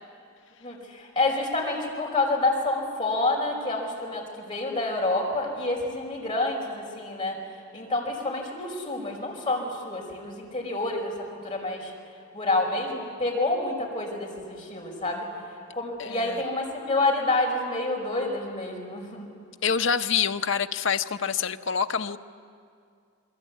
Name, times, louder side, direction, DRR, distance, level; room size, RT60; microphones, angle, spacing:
voice 1, 0.6-7.4 7.7-11.1 11.4-11.9 12.3-15.3 15.7-19.3, left 2 dB, 25° left, -3 dB, 5.2 m, -28 dB
voice 2, 16.0-16.4 19.6-22.2, left 7 dB, 60° left, 8 dB, 0.7 m, -26 dB
28.0 x 22.0 x 8.4 m, 2.3 s
head